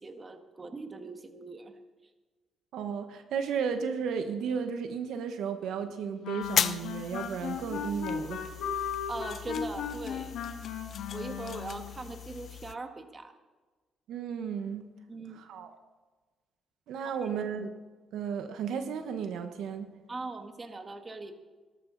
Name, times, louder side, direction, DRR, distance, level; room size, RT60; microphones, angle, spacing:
voice 1, 0.0-1.8 9.1-10.4 11.1-13.3 15.1-15.4 17.2-17.3 20.1-21.3, right 3 dB, 30° right, 6 dB, 1.7 m, -41 dB
voice 2, 2.7-8.5 14.1-14.8 15.5-15.7 16.9-17.7 18.1-19.9, right 6 dB, 80° right, 7 dB, 1.2 m, -34 dB
sound 1, 6.2-11.9, left 7 dB, 85° left, 1.9 m, -36 dB
sound 2, 6.4-12.7, left 7 dB, 55° left, 0.6 m, -37 dB
18.0 x 13.5 x 4.0 m, 1.3 s
cardioid pair, 90°, 0 cm